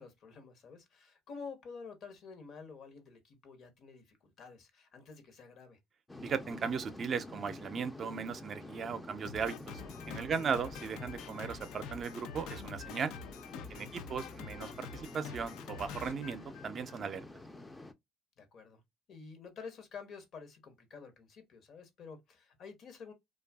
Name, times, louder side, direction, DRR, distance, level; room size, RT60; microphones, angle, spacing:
voice 1, 0.0-5.8 10.3-10.5 13.7-13.9 18.4-18.8 19.1-23.1, left 5 dB, 60° left, 0.9 m, -50 dB
sound 1, 6.1-17.9, left 2 dB, 15° left, 0.5 m, -49 dB
voice 2, 6.2-9.8 10.1-13.1 13.7-17.3, right 6 dB, 45° right, 0.5 m, -37 dB
Drum kit, 9.2-17.0, left 6 dB, 75° left, 0.4 m, -47 dB
2.5 x 2.3 x 2.3 m
supercardioid pair, 75°, 0 cm